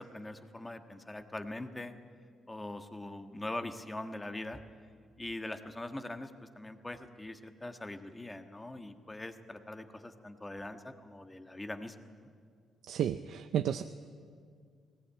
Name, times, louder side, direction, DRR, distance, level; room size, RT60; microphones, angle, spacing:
voice 1, 0.0-1.9 2.5-4.6 5.2-12.1, left 1 dB, 15° left, 7 dB, 1.5 m, -42 dB
voice 2, 12.8-13.8, right 9 dB, 75° right, 10 dB, 0.6 m, -32 dB
19.5 x 18.0 x 9.0 m, 2.1 s
cardioid pair, 90°, 0 cm